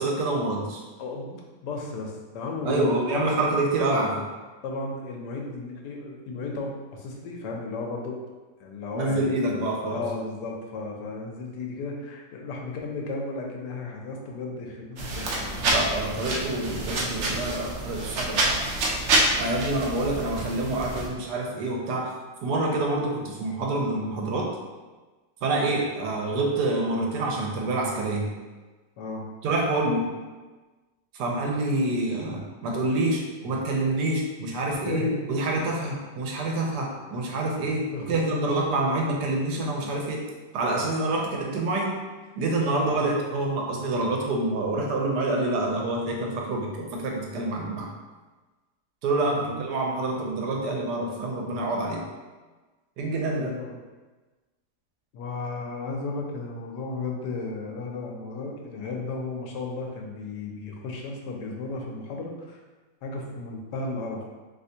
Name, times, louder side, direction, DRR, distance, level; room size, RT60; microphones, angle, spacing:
voice 1, 0.0-0.8 2.6-4.3 8.9-10.0 15.7-18.6 19.4-22.1 22.4-24.5 25.4-28.3 29.4-30.0 31.1-40.2 40.5-42.0 42.4-47.9 49.0-52.0 53.0-53.5, right 2 dB, 80° right, 0 dB, 1.2 m, -27 dB
voice 2, 1.0-3.5 4.6-8.2 8.6-9.4 9.9-15.6 29.0-29.3 32.1-32.4 34.9-35.2 37.9-38.5 42.9-43.1 49.3-49.5 53.3-53.8 55.1-62.6 63.0-64.2, left 3 dB, 85° left, 1 dB, 1.2 m, -34 dB
sound 1, 15.0-21.1, right 2 dB, 65° right, 0.7 m, -27 dB
3.3 x 3.0 x 2.7 m, 1.3 s
omnidirectional pair, 1.8 m